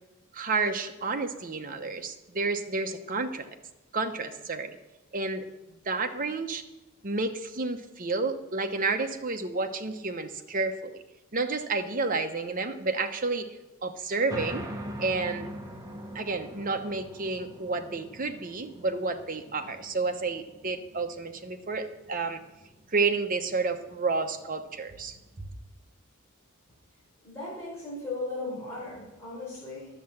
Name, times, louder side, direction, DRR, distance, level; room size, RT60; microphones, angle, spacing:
voice 1, 0.3-3.5 3.9-4.8 5.1-5.5 5.8-6.6 7.0-11.0 11.3-13.6 13.8-14.7 15.0-15.5 16.1-22.4 22.9-25.2, right 3 dB, 40° right, 6 dB, 0.9 m, -30 dB
sound 1, 14.3-25.4, equal, 15° right, 1.1 m, -44 dB
voice 2, 27.2-29.9, left 2 dB, 10° left, -9 dB, 4.4 m, -37 dB
11.0 x 7.6 x 7.2 m, 1.0 s
head